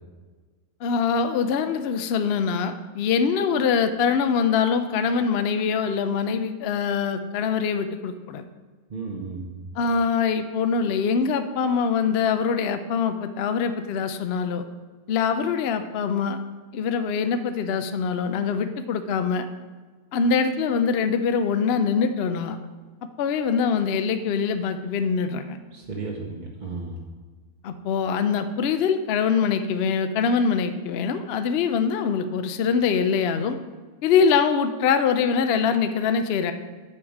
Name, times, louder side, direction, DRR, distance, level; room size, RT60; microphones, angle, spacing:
voice 1, 0.8-8.4 9.8-14.6 15.1-16.4 16.7-19.5 20.1-22.6 23.2-25.6 27.6-33.6 34.0-36.5, left 6 dB, 60° left, 9 dB, 0.6 m, -23 dB
voice 2, 8.9-9.6 25.7-27.0, right 4 dB, 40° right, -1 dB, 0.8 m, -34 dB
7.0 x 4.9 x 7.1 m, 1.4 s
omnidirectional pair, 1.5 m